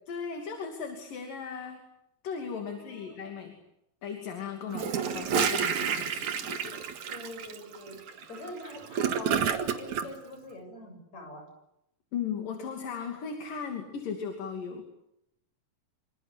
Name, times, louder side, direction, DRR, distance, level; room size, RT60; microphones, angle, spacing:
voice 1, 0.1-1.8 2.2-3.6 4.0-6.8 12.1-14.9, left 6 dB, 70° left, 3 dB, 4.4 m, -37 dB
voice 2, 2.6-3.2 7.1-8.0 8.3-11.5, left 1 dB, 50° left, 4 dB, 9.1 m, -44 dB
Gurgling / Toilet flush, 4.7-10.1, right 7 dB, 60° right, 2.9 m, -29 dB
26.5 x 26.0 x 8.2 m, 0.81 s
omnidirectional pair, 4.1 m